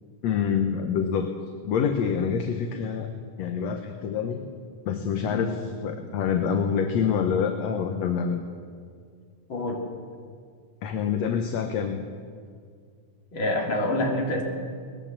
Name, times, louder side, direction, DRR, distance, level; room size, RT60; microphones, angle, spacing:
voice 1, 0.2-1.3 1.6-3.1 3.4-4.4 4.9-8.4 10.8-12.1, left 7 dB, 65° left, 5 dB, 2.1 m, -26 dB
voice 2, 9.5-9.8 13.3-14.4, left 1 dB, 35° left, 0 dB, 3.6 m, -26 dB
22.5 x 19.5 x 7.6 m, 2.1 s
omnidirectional pair, 3.7 m